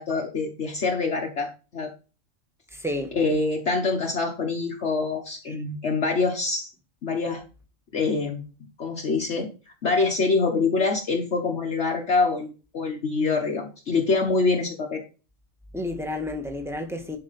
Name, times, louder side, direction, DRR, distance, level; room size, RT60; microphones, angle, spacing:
voice 1, 0.0-1.9 3.1-6.7 7.0-7.4 7.9-8.4 8.8-9.5 9.8-15.0, left 4 dB, 60° left, 1.5 m, -25 dB
voice 2, 2.7-3.2 15.7-17.2, left 1 dB, ahead, 1.7 m, -31 dB
11.0 x 5.2 x 4.1 m
omnidirectional pair, 1.4 m